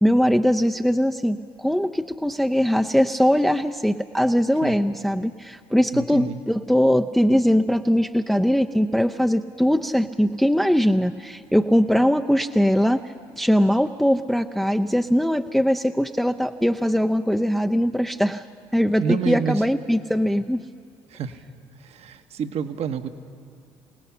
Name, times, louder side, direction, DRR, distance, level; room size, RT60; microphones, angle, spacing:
voice 1, 0.0-13.0 13.4-18.4 18.7-20.6, equal, ahead, 5 dB, 0.6 m, -21 dB
voice 2, 5.9-6.4 19.0-19.6 21.1-21.4 21.8-23.1, right 7 dB, 55° right, 9 dB, 1.1 m, -28 dB
27.0 x 18.0 x 5.8 m, 2.4 s
hypercardioid pair, 55°, 12 cm